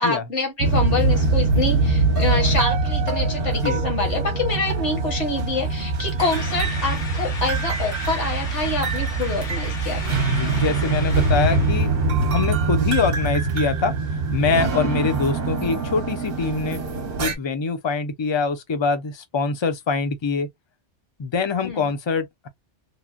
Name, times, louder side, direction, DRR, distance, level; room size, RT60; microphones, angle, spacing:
voice 1, 0.0-10.3 15.6-15.8 21.6-21.9, left 3 dB, 75° left, 1.6 m, -26 dB
sound 1, 0.6-17.3, right 3 dB, 55° right, 0.9 m, -23 dB
sound 2, 6.2-11.9, left 4 dB, 90° left, 1.4 m, -36 dB
voice 2, 10.3-11.9 12.3-14.0 14.3-16.8 17.2-20.5 21.2-22.5, left 4 dB, 35° left, 0.5 m, -24 dB
3.2 x 2.1 x 2.5 m
omnidirectional pair, 1.2 m